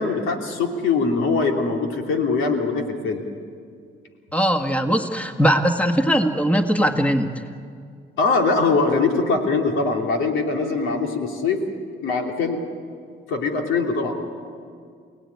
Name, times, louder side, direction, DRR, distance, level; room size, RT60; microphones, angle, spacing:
voice 1, 0.0-3.2 8.2-11.6 12.0-12.6 13.3-14.2, left 4 dB, 85° left, 2 dB, 3.1 m, -22 dB
voice 2, 4.3-7.4, equal, 5° left, 5 dB, 1.9 m, -20 dB
28.5 x 18.0 x 9.7 m, 2.2 s
cardioid pair, 90°, 20 cm